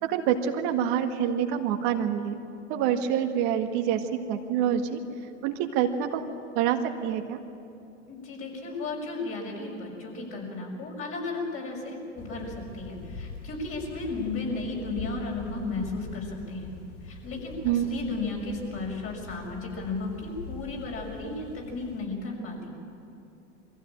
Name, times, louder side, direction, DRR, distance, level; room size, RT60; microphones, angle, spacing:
voice 1, 0.0-2.4 2.7-5.0 5.4-6.2 6.6-7.4 17.6-17.8, right 9 dB, 55° right, 5 dB, 1.8 m, -26 dB
voice 2, 8.1-16.7 17.0-22.7, left 3 dB, 35° left, -1 dB, 6.4 m, -34 dB
sound 1, 12.2-22.0, left 3 dB, 60° left, 2.8 m, -43 dB
23.0 x 15.5 x 8.8 m, 2.6 s
hypercardioid pair, 100°, 37 cm